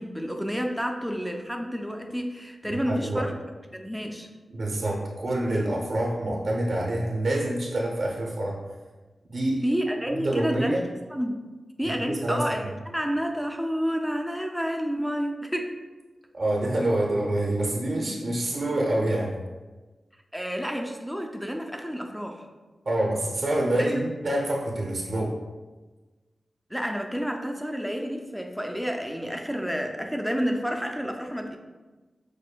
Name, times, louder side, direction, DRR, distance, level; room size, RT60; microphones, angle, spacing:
voice 1, 0.0-3.4 3.7-4.3 9.6-10.8 11.1-11.4 11.8-15.7 20.3-22.5 23.8-24.0 26.7-31.6, equal, ahead, 3 dB, 0.3 m, -30 dB
voice 2, 2.7-3.3 4.5-8.6 9.3-9.6 10.2-10.8 11.8-12.4 16.3-19.3 22.9-25.4, right 1 dB, 55° right, -2 dB, 0.6 m, -26 dB
6.1 x 2.5 x 2.2 m, 1.3 s
wide cardioid pair, 145°, 0 cm